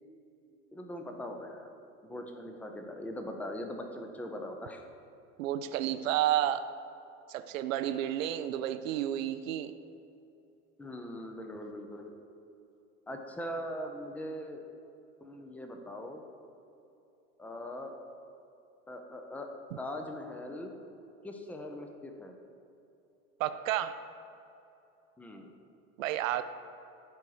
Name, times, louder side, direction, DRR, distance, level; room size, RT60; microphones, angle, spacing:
voice 1, 0.7-1.7 2.0-4.8 10.8-12.1 13.1-14.6 15.2-16.2 17.4-17.9 18.9-19.5 19.8-20.7 21.2-22.4 25.2-25.5, left 1 dB, 5° left, 4 dB, 0.6 m, -41 dB
voice 2, 5.4-6.7 7.3-9.7 23.4-24.0 26.0-26.4, right 12 dB, 60° right, 11 dB, 0.5 m, -31 dB
12.0 x 4.8 x 4.7 m, 2.8 s
figure-of-eight pair, 85°, 44 cm